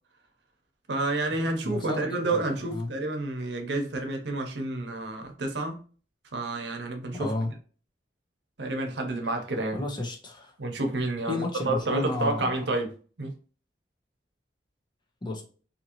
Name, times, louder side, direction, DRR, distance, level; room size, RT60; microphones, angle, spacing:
voice 1, 0.9-5.8 6.3-7.3 8.6-9.8 10.6-12.9 13.2-13.3, right 2 dB, 75° right, 0.8 m, -29 dB
voice 2, 1.6-2.9 7.1-7.5 9.7-10.5 11.3-12.5 15.2-15.4, left 2 dB, 25° left, 0.7 m, -32 dB
2.7 x 2.6 x 2.9 m
head